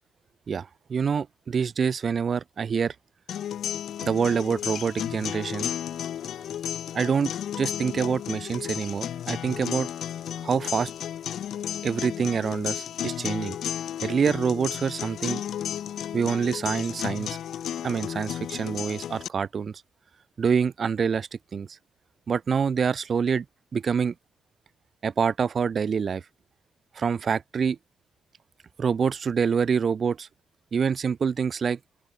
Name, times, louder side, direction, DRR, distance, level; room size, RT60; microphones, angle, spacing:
voice 1, 0.5-2.9 4.0-5.7 6.9-7.3 7.6-9.9 10.4-10.9 11.8-13.6 14.0-15.4 16.1-17.4 17.8-19.8 20.4-21.7 22.3-23.4 23.7-24.1 25.0-26.2 27.0-27.8 28.8-30.3 30.7-31.8, right 6 dB, 45° right, 0.5 m, -26 dB
sound 1, 3.3-19.3, left 10 dB, 65° left, 1.5 m, -33 dB
open air
cardioid pair, 90°, 0 cm